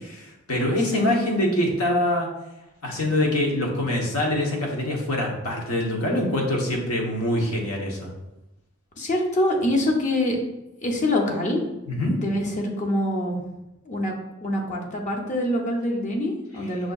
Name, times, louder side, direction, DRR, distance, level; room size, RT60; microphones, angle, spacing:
voice 1, 0.1-2.3 2.8-8.1 11.9-12.1, left 1 dB, 85° left, -1 dB, 0.9 m, -24 dB
voice 2, 9.0-10.4 10.8-11.6 12.2-13.4 13.9-14.1 14.4-16.9, left 1 dB, 35° left, 0 dB, 0.6 m, -25 dB
5.9 x 2.6 x 2.3 m, 0.95 s
head